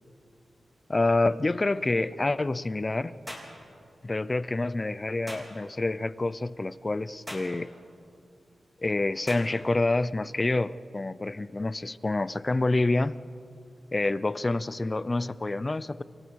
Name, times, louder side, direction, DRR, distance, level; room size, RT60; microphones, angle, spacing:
voice 1, 0.9-3.2 4.0-7.7 8.8-13.1 13.9-16.0, left 2 dB, 25° left, 16 dB, 0.5 m, -27 dB
sound 1, 3.3-3.5 5.3-5.5 7.3-7.5 9.3-9.5, equal, ahead, 3.9 m, -39 dB
28.5 x 24.0 x 4.7 m, 2.5 s
wide cardioid pair, 120°, 0 cm